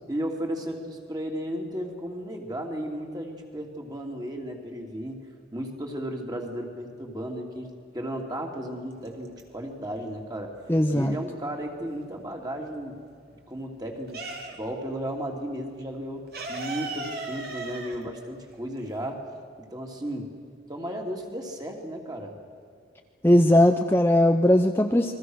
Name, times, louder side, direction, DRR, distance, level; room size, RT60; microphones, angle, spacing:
voice 1, 0.1-5.2 5.5-7.7 7.9-10.6 10.9-12.9 13.3-19.2 19.6-20.3 20.7-22.4, equal, 20° right, 1 dB, 3.0 m, -34 dB
sound 1, 8.9-9.8 10.2-12.1 12.5-14.9 15.1-15.3 15.6-19.1, right 3 dB, 55° right, 3.3 m, -37 dB
voice 2, 10.7-11.2 23.2-25.1, left 1 dB, 10° left, 5 dB, 0.7 m, -19 dB
29.0 x 22.0 x 6.5 m, 2.2 s
head